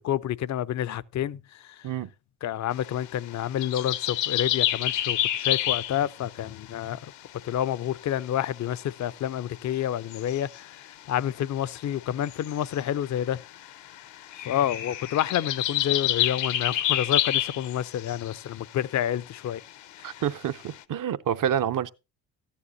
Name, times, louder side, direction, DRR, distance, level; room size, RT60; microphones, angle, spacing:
voice 1, 0.0-1.8 2.4-7.0 7.4-13.4 14.4-19.6 20.0-20.2, left 11 dB, 40° left, 0.5 m, -29 dB
sound 1, 2.7-6.7 7.4-7.5 7.7-8.5 9.0-9.1 10.1-10.9 12.0-18.6 18.9-19.7 20.0-20.8, left 12 dB, 75° left, 0.8 m, -29 dB
voice 2, 20.0-21.9, right 9 dB, 45° right, 0.6 m, -28 dB
13.5 x 9.8 x 2.7 m
supercardioid pair, 65°, 44 cm